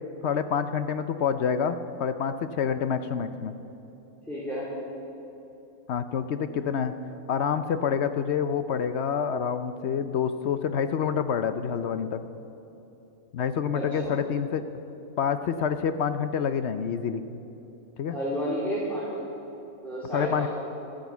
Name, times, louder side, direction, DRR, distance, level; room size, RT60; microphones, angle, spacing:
voice 1, 0.2-3.5 5.9-6.9 7.3-12.2 13.3-14.8 15.2-17.2 18.0-18.2 20.1-20.5, left 7 dB, 60° left, 10 dB, 0.7 m, -27 dB
voice 2, 4.3-4.7 13.7-14.1 18.1-19.2 19.8-20.5, equal, ahead, -9 dB, 3.1 m, -31 dB
13.0 x 10.5 x 8.1 m, 3.0 s
omnidirectional pair, 1.6 m